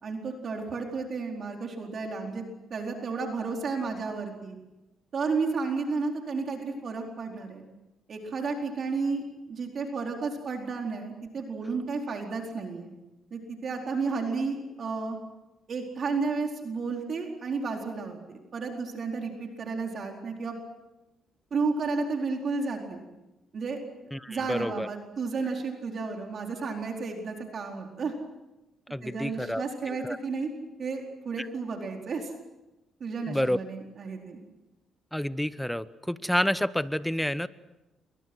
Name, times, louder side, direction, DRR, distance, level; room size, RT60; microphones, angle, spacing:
voice 1, 0.0-2.4 2.7-4.6 5.1-7.6 8.1-12.9 13.3-15.2 15.7-20.5 21.5-23.0 23.5-23.8 24.3-28.1 29.0-30.5 30.8-32.3 33.0-34.4, right 4 dB, 50° right, 1 dB, 4.4 m, -32 dB
voice 2, 24.1-24.9 28.9-29.6 30.0-30.2 31.4-31.5 33.3-33.6 35.1-37.5, equal, 5° left, 15 dB, 0.9 m, -29 dB
28.5 x 24.5 x 6.3 m, 1.0 s
cardioid pair, 90°, 0 cm